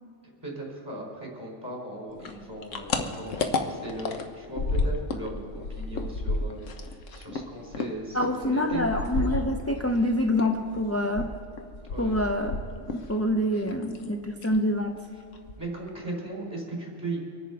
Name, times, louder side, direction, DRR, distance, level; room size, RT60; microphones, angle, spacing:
voice 1, 0.4-5.5 5.7-8.8 11.9-12.2 13.6-13.8 15.6-17.2, right 1 dB, 20° right, -2 dB, 4.0 m, -37 dB
sound 1, 2.2-5.3 5.5-10.0 10.4-13.1 13.4-14.1 14.4-14.6 15.0-15.1 15.3-15.9, left 3 dB, 85° left, 1.3 m, -31 dB
voice 2, 8.1-11.3 12.0-12.6 12.9-15.0, left 1 dB, 20° left, 2 dB, 0.4 m, -26 dB
25.0 x 10.0 x 4.6 m, 2.6 s
omnidirectional pair, 1.3 m